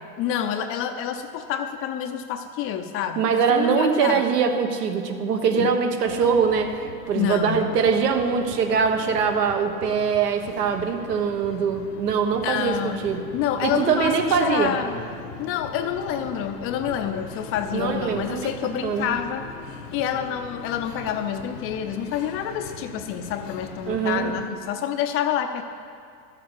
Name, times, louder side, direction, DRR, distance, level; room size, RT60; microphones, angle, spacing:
voice 1, 0.2-4.3 5.6-5.7 7.1-7.7 12.4-13.0 13.3-15.0 15.4-19.5 19.9-25.6, left 9 dB, 30° left, 7 dB, 0.5 m, -28 dB
voice 2, 3.2-13.2 13.6-14.8 17.7-18.5 18.8-19.2 23.9-24.3, right 6 dB, 80° right, 5 dB, 1.4 m, -23 dB
sound 1, 6.0-24.5, left 5 dB, 80° left, 1.2 m, -41 dB
13.0 x 7.4 x 6.2 m, 2.3 s
hypercardioid pair, 125°, 47 cm